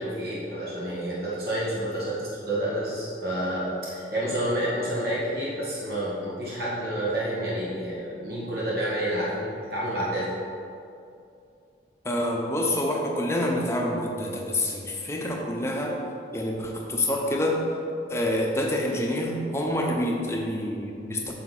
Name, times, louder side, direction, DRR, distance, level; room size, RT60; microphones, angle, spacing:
voice 1, 0.0-10.3, right 1 dB, 55° right, -8 dB, 1.9 m, -29 dB
voice 2, 12.0-16.0 16.3-17.6 18.1-21.3, left 1 dB, 15° left, -1 dB, 0.9 m, -27 dB
9.3 x 6.7 x 4.2 m, 2.5 s
head